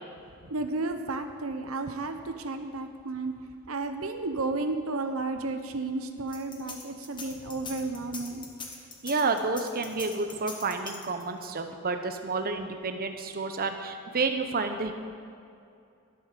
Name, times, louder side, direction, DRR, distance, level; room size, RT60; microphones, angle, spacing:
voice 1, 0.4-3.3 3.7-8.5, right 3 dB, 75° right, 7 dB, 0.9 m, -32 dB
sound 1, 6.3-11.4, left 4 dB, 20° left, 1.6 m, -42 dB
voice 2, 9.0-14.9, right 3 dB, 45° right, 6 dB, 1.0 m, -30 dB
12.5 x 11.5 x 6.8 m, 2.5 s
head